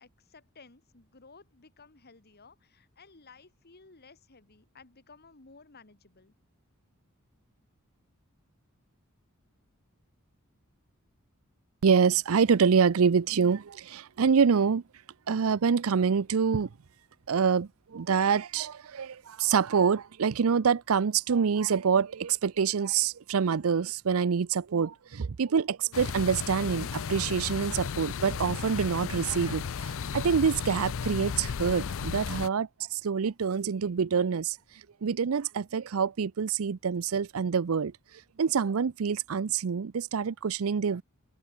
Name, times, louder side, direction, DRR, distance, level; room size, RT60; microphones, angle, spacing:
voice 1, 0.0-6.3, left 4 dB, 50° left, 2.1 m, -55 dB
voice 2, 11.8-14.8 15.3-16.7 17.3-34.6 35.0-37.9 38.4-41.0, right 6 dB, 75° right, 0.5 m, -26 dB
sound 1, 25.9-32.5, left 6 dB, 65° left, 0.5 m, -34 dB
open air
head